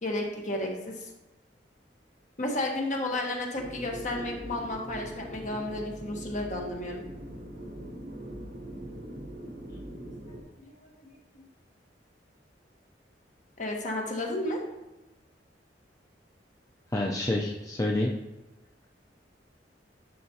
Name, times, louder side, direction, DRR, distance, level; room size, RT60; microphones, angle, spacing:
voice 1, 0.0-1.1 2.4-7.0 10.6-11.4 13.6-14.6, left 1 dB, 45° left, 1 dB, 1.3 m, -33 dB
sound 1, 3.5-10.4, right 1 dB, 55° right, 1.0 m, -42 dB
voice 2, 16.9-18.1, left 1 dB, 20° left, -2 dB, 0.5 m, -28 dB
11.0 x 4.2 x 2.8 m, 1.0 s
head